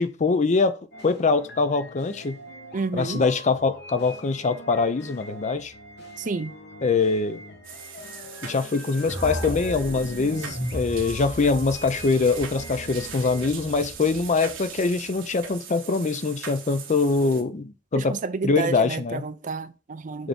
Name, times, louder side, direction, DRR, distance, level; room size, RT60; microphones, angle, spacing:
voice 1, 0.0-2.4 2.9-5.7 6.8-7.4 8.4-18.2 18.4-19.2 20.2-20.3, left 4 dB, 40° left, 0.5 m, -23 dB
sound 1, 0.9-13.4, left 1 dB, 60° left, 1.2 m, -44 dB
voice 2, 2.7-3.2 6.2-6.5 17.9-20.3, right 4 dB, 40° right, 0.5 m, -30 dB
sound 2, 7.6-17.4, right 7 dB, 80° right, 1.3 m, -41 dB
sound 3, 9.0-15.1, equal, 75° left, 2.2 m, -36 dB
6.3 x 3.5 x 5.2 m
head